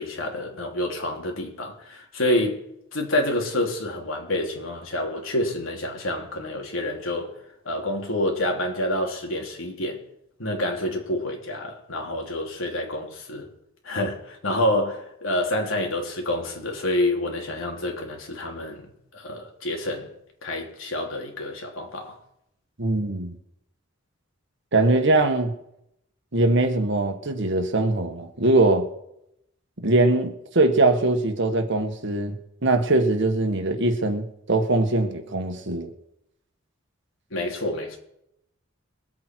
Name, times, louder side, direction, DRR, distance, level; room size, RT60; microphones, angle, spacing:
voice 1, 0.0-2.6 2.9-7.3 7.7-10.0 10.4-13.5 13.8-20.1 20.4-22.2 37.3-38.0, left 1 dB, 80° left, 3.3 m, -28 dB
voice 2, 22.8-23.4 24.7-25.6 26.3-28.8 29.8-32.4 32.6-35.9, right 2 dB, 65° right, 1.7 m, -22 dB
23.0 x 8.4 x 4.7 m
head